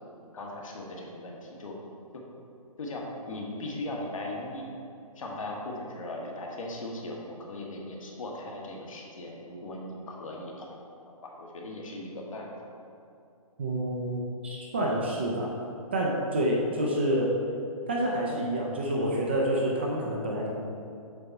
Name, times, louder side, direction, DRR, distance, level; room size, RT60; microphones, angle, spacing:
voice 1, 0.3-1.8 2.1-2.2 2.8-4.7 5.1-10.7 11.2-12.5, left 1 dB, 65° left, -1 dB, 1.3 m, -38 dB
voice 2, 13.6-15.5 15.9-17.3 17.9-20.5, right 1 dB, 20° right, -3 dB, 0.4 m, -28 dB
6.8 x 4.3 x 4.0 m, 2.6 s
hypercardioid pair, 165°, 19 cm